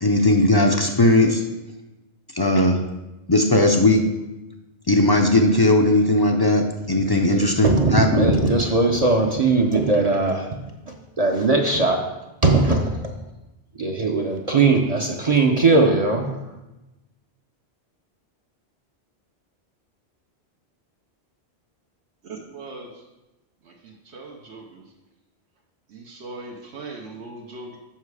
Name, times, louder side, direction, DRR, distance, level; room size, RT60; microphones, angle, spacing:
voice 1, 0.0-1.4 2.3-2.8 3.3-4.1 4.9-8.3, left 1 dB, 35° left, 3 dB, 0.4 m, -18 dB
voice 2, 7.0-10.6 10.9-12.0 12.4-12.9 13.8-16.4, right 3 dB, 45° right, 1 dB, 0.6 m, -20 dB
voice 3, 22.2-22.9 23.7-24.8 25.9-27.8, right 3 dB, 85° right, -1 dB, 1.2 m, -39 dB
7.4 x 5.6 x 4.8 m, 1.0 s
omnidirectional pair, 1.1 m